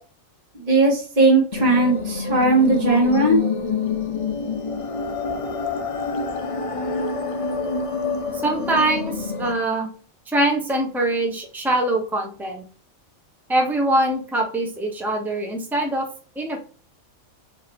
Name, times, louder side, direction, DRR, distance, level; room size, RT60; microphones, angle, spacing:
voice 1, 0.6-3.4, right 2 dB, 35° right, -2 dB, 1.5 m, -18 dB
sound 1, 1.5-9.5, left 4 dB, 60° left, 0.3 m, -27 dB
voice 2, 8.3-9.9 10.3-12.6 13.5-16.1 16.3-16.6, right 1 dB, ahead, 1 dB, 0.9 m, -23 dB
4.9 x 3.4 x 3.1 m, 0.40 s
omnidirectional pair, 1.4 m